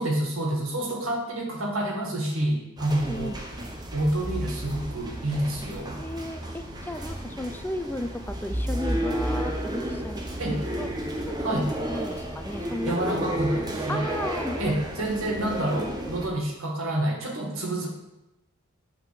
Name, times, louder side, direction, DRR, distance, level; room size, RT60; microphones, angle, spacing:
voice 1, 0.0-3.4 3.9-6.0 10.4-10.6 11.4-11.7 12.9-14.0 14.6-17.9, right 1 dB, 65° right, 1 dB, 1.8 m, -28 dB
sound 1, 2.8-16.3, right 1 dB, 20° right, 0.8 m, -32 dB
voice 2, 3.0-3.4 6.0-10.9 11.2-12.9 13.9-14.7 15.0-15.1, left 1 dB, 10° left, 7 dB, 0.4 m, -35 dB
9.1 x 3.8 x 6.7 m, 0.97 s
head